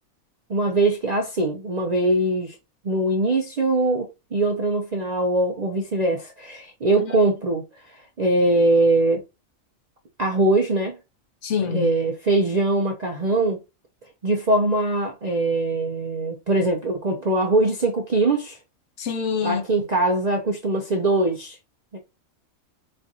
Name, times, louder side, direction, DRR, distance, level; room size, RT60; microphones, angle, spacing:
voice 1, 0.5-2.6 2.8-7.6 8.2-9.2 10.2-11.0 11.7-13.6 14.2-18.6 19.4-21.6 21.9-22.0, right 2 dB, 55° right, 0.4 m, -22 dB
voice 2, 11.4-11.9 19.0-19.7, left 6 dB, 65° left, 1.0 m, -26 dB
4.3 x 2.5 x 2.7 m
omnidirectional pair, 1.4 m